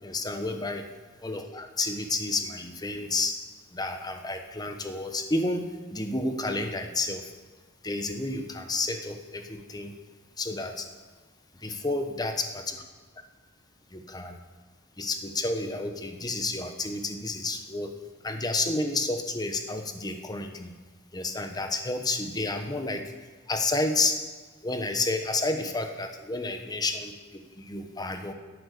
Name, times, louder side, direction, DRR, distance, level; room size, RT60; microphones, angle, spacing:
voice 1, 0.0-0.9 1.2-3.3 3.7-7.3 7.8-9.9 10.4-10.9 11.6-12.8 13.9-14.4 15.0-17.9 18.2-20.7 21.1-23.0 23.5-24.2 24.6-28.3, left 2 dB, 20° left, 6 dB, 1.1 m, -30 dB
11.0 x 9.0 x 6.8 m, 1.4 s
head